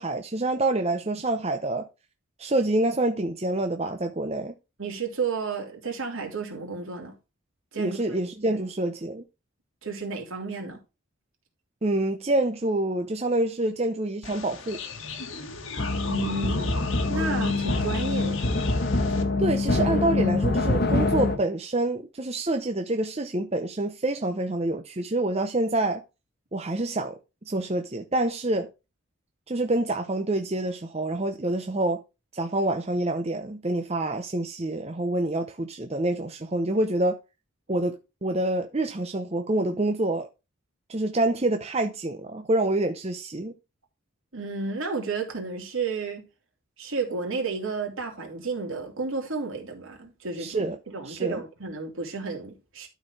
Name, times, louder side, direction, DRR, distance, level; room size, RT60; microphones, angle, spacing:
voice 1, 0.0-1.9 2.4-4.5 7.8-9.2 11.8-14.8 19.4-26.0 26.5-27.2 27.5-28.7 29.5-32.0 32.3-37.2 37.7-40.3 40.9-43.5 50.4-50.8 51.1-51.4, right 2 dB, 30° right, 0.6 m, -27 dB
voice 2, 4.8-7.1 7.7-8.2 8.5-8.6 9.8-10.8 16.1-18.5 44.3-46.3 46.8-52.9, right 4 dB, 65° right, 3.1 m, -32 dB
sound 1, 14.2-19.2, left 4 dB, 65° left, 1.6 m, -37 dB
sound 2, 15.8-21.4, left 2 dB, 45° left, 1.2 m, -25 dB
12.5 x 4.4 x 4.7 m
head